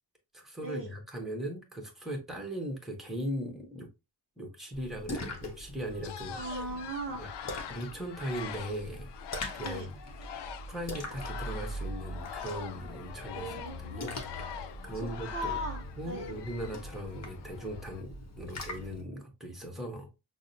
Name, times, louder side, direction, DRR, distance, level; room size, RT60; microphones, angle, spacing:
voice 1, 0.3-3.9 4.4-6.4 7.2-7.3 7.7-9.1 9.5-9.9 10.7-14.2 14.8-15.6 16.0-20.1, right 1 dB, ahead, 0.9 m, -39 dB
Splash splatter, 4.7-19.0, left 1 dB, 40° left, 0.9 m, -42 dB
sound 1, 5.9-18.0, left 8 dB, 70° left, 0.5 m, -44 dB
voice 2, 6.3-7.2 9.6-9.9 13.3-14.0 14.9-16.4, equal, 30° right, 0.6 m, -38 dB
6.0 x 2.0 x 2.6 m
wide cardioid pair, 160°, 42 cm